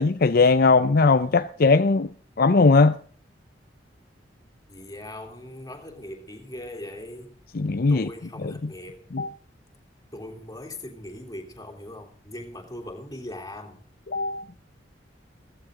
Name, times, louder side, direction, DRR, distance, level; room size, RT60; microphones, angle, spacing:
voice 1, 0.0-2.1 2.4-3.0 7.5-8.1 8.4-8.7 9.1-9.3 14.1-14.4, left 4 dB, 55° left, 0.6 m, -19 dB
voice 2, 4.7-7.4 7.9-9.1 10.1-13.8, left 1 dB, 20° left, 3.2 m, -40 dB
16.0 x 15.5 x 3.7 m
head